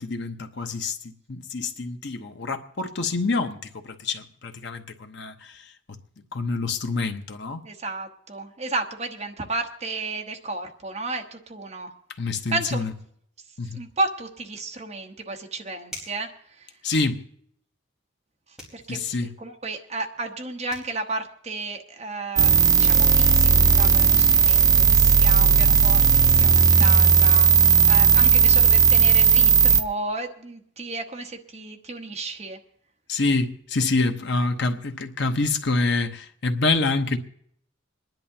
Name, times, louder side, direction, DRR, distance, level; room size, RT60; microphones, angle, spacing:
voice 1, 0.0-6.0 6.3-7.6 12.2-12.9 13.6-13.8 16.8-17.2 18.9-19.3 33.1-37.2, left 3 dB, 65° left, 1.0 m, -27 dB
voice 2, 7.6-11.9 12.5-12.8 13.7-16.3 16.6-16.7 18.7-32.6, right 3 dB, 35° right, 1.2 m, -33 dB
sound 1, 15.9-16.3 18.6-18.8 20.4-20.5 20.7-20.9, left 1 dB, 5° right, 4.2 m, -41 dB
sound 2, 22.4-29.8, right 6 dB, 20° right, 0.5 m, -16 dB
26.5 x 10.5 x 2.8 m
head